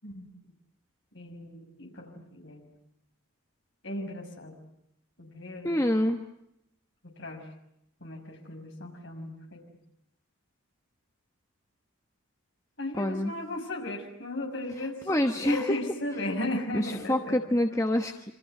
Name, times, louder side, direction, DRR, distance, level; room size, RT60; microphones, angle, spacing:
voice 1, 1.1-2.7 3.8-4.6 5.2-5.8 7.0-7.4 8.0-9.6 12.8-15.1 15.3-17.4, left 1 dB, 55° left, 3 dB, 6.0 m, -36 dB
voice 2, 5.6-6.2 13.0-13.3 15.1-15.8 16.7-18.3, left 1 dB, 15° left, 4 dB, 1.1 m, -26 dB
27.5 x 25.0 x 7.9 m, 0.79 s
head